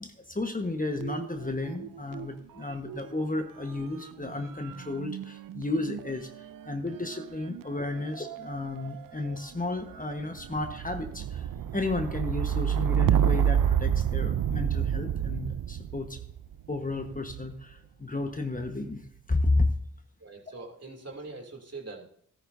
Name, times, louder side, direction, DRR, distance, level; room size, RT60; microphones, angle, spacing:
voice 1, 0.0-6.3 6.7-16.2 16.7-19.0 19.3-19.7, left 2 dB, 25° left, 5 dB, 1.4 m, -32 dB
sound 1, 1.0-2.3 2.6-17.6 18.4-19.0, right 9 dB, 65° right, 0.6 m, -30 dB
voice 2, 20.2-22.1, right 3 dB, 45° right, 0 dB, 3.1 m, -42 dB
13.5 x 12.5 x 2.8 m, 0.66 s
supercardioid pair, 40°, 35 cm